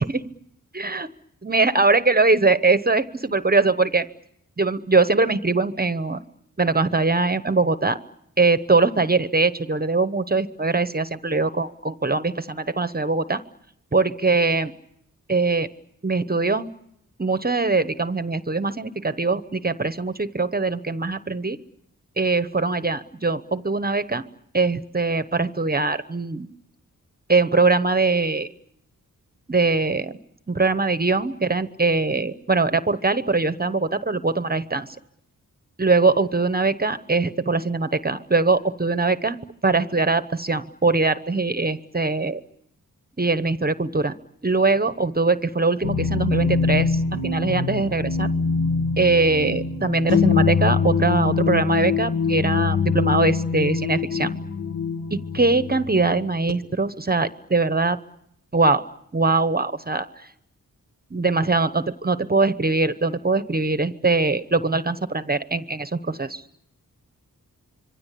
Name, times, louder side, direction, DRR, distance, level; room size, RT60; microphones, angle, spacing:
voice 1, 0.7-1.1 1.4-4.1 4.6-6.2 6.6-8.0 8.4-13.4 13.9-14.7 15.3-15.7 16.0-16.7 17.2-21.6 22.2-24.2 24.5-26.5 27.3-28.5 29.5-30.2 30.5-35.0 35.8-39.4 39.6-42.4 43.2-44.1 44.4-48.3 49.0-54.3 55.1-58.0 58.5-58.8 59.1-60.1 61.1-66.4, right 3 dB, 30° right, 12 dB, 1.0 m, -22 dB
sound 1, 45.8-56.5, left 5 dB, 55° left, 2.3 m, -23 dB
26.5 x 23.5 x 8.4 m, 0.75 s
wide cardioid pair, 115°, 34 cm